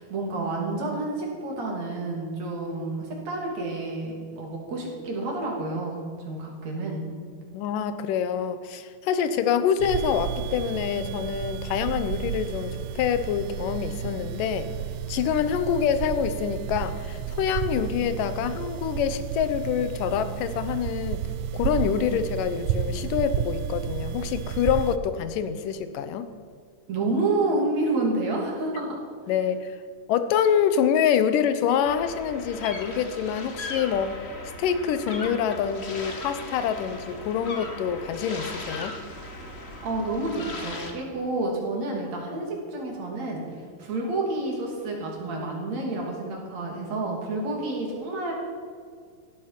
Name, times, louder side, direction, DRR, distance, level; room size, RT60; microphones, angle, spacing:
voice 1, 0.0-7.1 26.9-29.0 39.8-43.4 43.8-48.3, right 2 dB, 55° right, -2 dB, 4.1 m, -29 dB
voice 2, 7.5-14.7 15.1-21.2 21.5-26.3 29.3-29.8 30.1-34.2 34.6-39.0, left 8 dB, 80° left, 11 dB, 2.5 m, -26 dB
sound 1, 9.8-25.0, right 9 dB, 80° right, 1.9 m, -32 dB
sound 2, 31.8-40.9, left 2 dB, 50° left, 0.7 m, -38 dB
16.5 x 12.5 x 5.9 m, 2.1 s
omnidirectional pair, 3.9 m